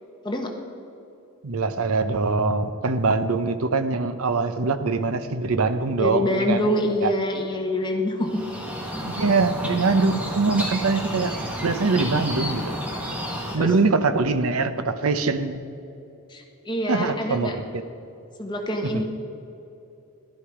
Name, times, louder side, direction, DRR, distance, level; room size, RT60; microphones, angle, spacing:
voice 1, 1.4-6.6 7.0-7.1 9.0-11.3 11.6-12.8 13.5-15.6 16.9-17.8 18.9-19.0, right 3 dB, 80° right, 10 dB, 0.7 m, -23 dB
voice 2, 6.0-8.4 13.6-13.7 16.3-17.6 18.4-19.0, left 1 dB, 20° left, 2 dB, 1.2 m, -25 dB
sound 1, 8.2-13.6, equal, 5° right, 1.4 m, -31 dB
11.5 x 11.5 x 4.9 m, 2.8 s
head